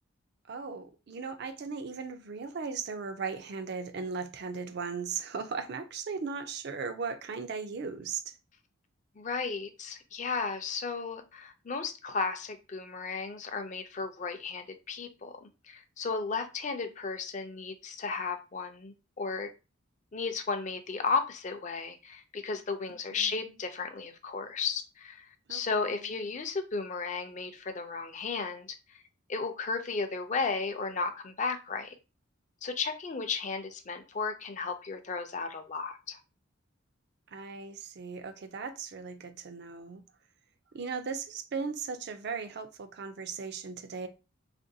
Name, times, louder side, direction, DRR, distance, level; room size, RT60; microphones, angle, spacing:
voice 1, 0.5-8.4 23.1-23.3 25.5-26.1 37.3-40.0 40.7-44.1, right 5 dB, 55° right, 0.4 m, -37 dB
voice 2, 9.2-19.5 20.1-29.0 29.3-31.9 32.6-36.2, left 4 dB, 35° left, 0.4 m, -34 dB
3.7 x 2.5 x 2.7 m
head